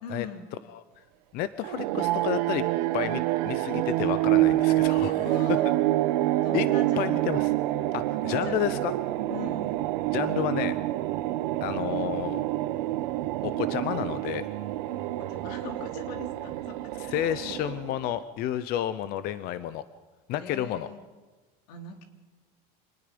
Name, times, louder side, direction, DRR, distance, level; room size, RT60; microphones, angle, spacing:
voice 1, 0.0-0.5 5.1-5.9 6.4-7.3 8.1-8.8 9.3-9.7 15.2-17.6 20.4-21.1 21.7-22.0, left 5 dB, 85° left, 4 dB, 3.3 m, -42 dB
voice 2, 1.3-2.6 2.9-5.2 6.5-6.7 7.0-7.5 7.9-8.9 10.1-10.8 11.6-12.4 13.4-14.5 17.1-19.8 20.3-20.9, left 12 dB, 50° left, 13 dB, 0.8 m, -30 dB
sound 1, 1.6-18.2, right 16 dB, 90° right, 1.1 m, -27 dB
26.0 x 19.5 x 5.3 m, 1.3 s
cardioid pair, 155°, 21 cm